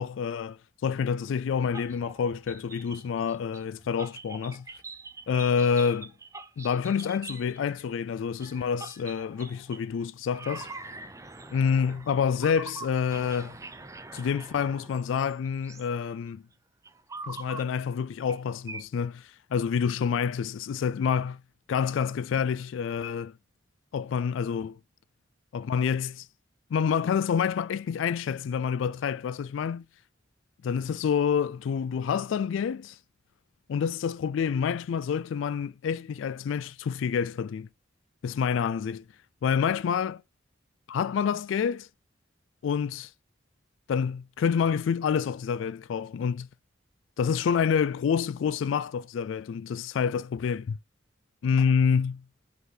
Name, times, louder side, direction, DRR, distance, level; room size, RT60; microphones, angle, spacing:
voice 1, 0.0-4.6 5.3-6.1 6.6-10.7 11.5-13.6 14.1-16.4 17.3-21.4 21.7-23.3 23.9-24.8 25.5-26.3 26.7-29.8 30.6-33.0 33.7-37.7 38.2-39.0 39.4-40.2 40.9-41.9 42.6-43.1 43.9-46.5 47.2-50.8 51.4-52.2, left 6 dB, 80° left, 0.3 m, -28 dB
sound 1, 1.6-7.8 8.4-10.0 10.3-15.9 16.8-17.7 18.3-18.4 18.7-18.8, right 3 dB, 15° right, 0.5 m, -44 dB
5.2 x 3.9 x 4.9 m
head